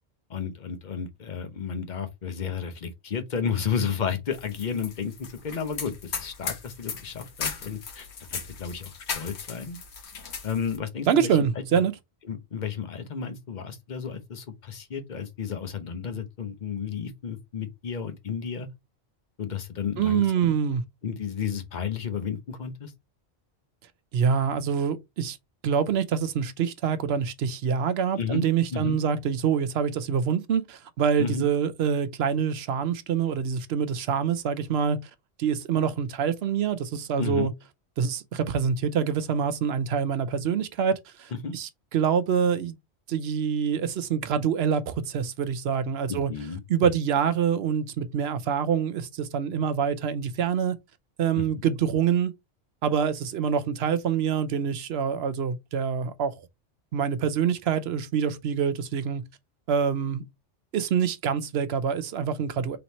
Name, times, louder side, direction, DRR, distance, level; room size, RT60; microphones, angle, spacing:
voice 1, 0.3-9.8 10.4-11.3 12.3-18.7 19.4-20.5 21.0-22.9 28.2-29.0 31.2-31.5 37.2-37.5 41.3-41.6 46.1-46.6 51.4-51.5, left 7 dB, 50° left, 0.8 m, -32 dB
sound 1, 4.3-10.8, left 6 dB, 80° left, 1.2 m, -37 dB
voice 2, 11.1-11.9 20.0-20.8 24.1-25.4 25.6-35.0 35.4-37.5 38.0-42.7 43.1-46.3 46.7-50.8 51.2-52.3 52.8-56.3 56.9-59.2 59.7-60.2 60.7-62.8, right 7 dB, 70° right, 0.8 m, -26 dB
3.4 x 2.9 x 4.0 m
omnidirectional pair, 1.1 m